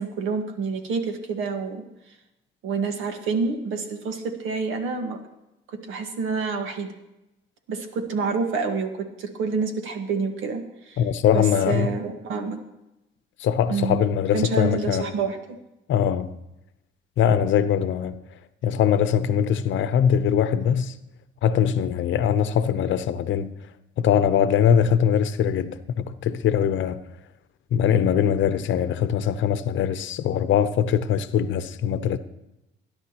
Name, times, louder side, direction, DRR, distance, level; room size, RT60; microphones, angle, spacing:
voice 1, 0.0-1.8 2.6-5.2 5.7-6.9 7.7-11.0 11.3-12.6 13.7-14.0 14.3-15.6, right 4 dB, 90° right, 1.6 m, -28 dB
voice 2, 11.0-12.0 13.4-15.1 15.9-16.3 17.2-18.2 18.6-20.9 21.4-23.5 24.0-27.0 27.7-32.2, left 8 dB, 75° left, 0.8 m, -22 dB
20.0 x 10.5 x 3.0 m
cardioid pair, 90°, 20 cm